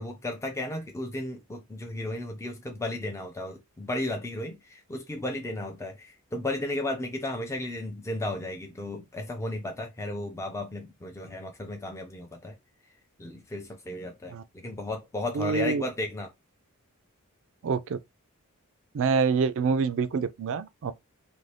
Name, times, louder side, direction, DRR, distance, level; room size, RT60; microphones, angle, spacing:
voice 1, 0.0-12.5 13.2-16.3, left 1 dB, 15° left, 0.4 m, -34 dB
voice 2, 15.3-15.8 17.6-18.0 18.9-20.9, right 5 dB, 60° right, 0.4 m, -26 dB
2.6 x 2.1 x 3.3 m
head